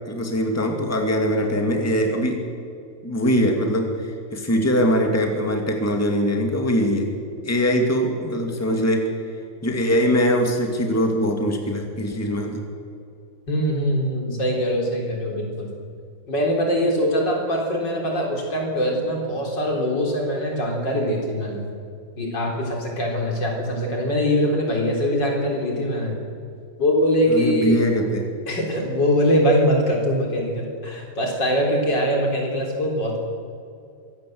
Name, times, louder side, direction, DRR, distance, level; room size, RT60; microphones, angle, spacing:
voice 1, 0.1-2.4 3.0-7.1 7.4-9.1 9.6-12.6 27.3-28.3, equal, 10° left, 2 dB, 2.3 m, -22 dB
voice 2, 13.5-15.7 16.3-21.7 22.2-26.2 26.8-27.8 28.5-33.2, equal, 70° left, 0 dB, 4.5 m, -22 dB
23.5 x 17.0 x 7.9 m, 2.5 s
omnidirectional pair, 2.0 m